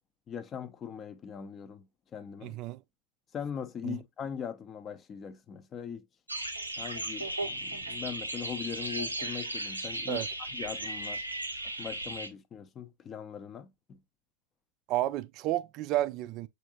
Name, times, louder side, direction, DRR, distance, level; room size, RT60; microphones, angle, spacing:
voice 1, 0.3-1.9 2.1-2.6 3.3-6.1 6.8-10.2 10.5-11.2 11.8-14.0, left 8 dB, 25° left, 0.5 m, -40 dB
voice 2, 2.4-2.8 3.8-4.0 10.1-10.3 14.9-16.5, right 15 dB, 40° right, 0.4 m, -31 dB
sound 1, 6.3-12.3, right 1 dB, 85° right, 0.6 m, -36 dB
6.5 x 2.6 x 2.7 m
figure-of-eight pair, 90°, 0 cm